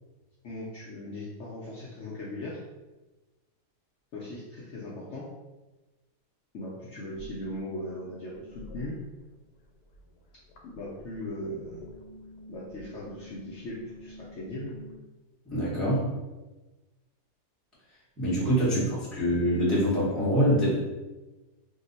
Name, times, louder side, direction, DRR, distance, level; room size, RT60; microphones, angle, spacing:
voice 1, 0.4-2.6 4.1-5.3 6.5-9.0 10.6-11.8 12.5-14.8 18.4-19.0, left 1 dB, 70° left, -6 dB, 0.7 m, -39 dB
sound 1, 7.1-9.5 9.7-15.0, left 1 dB, 90° left, 1.2 m, -48 dB
voice 2, 15.5-16.0 18.2-20.9, equal, ahead, -9 dB, 0.8 m, -25 dB
2.8 x 2.0 x 3.9 m, 1.1 s
omnidirectional pair, 1.8 m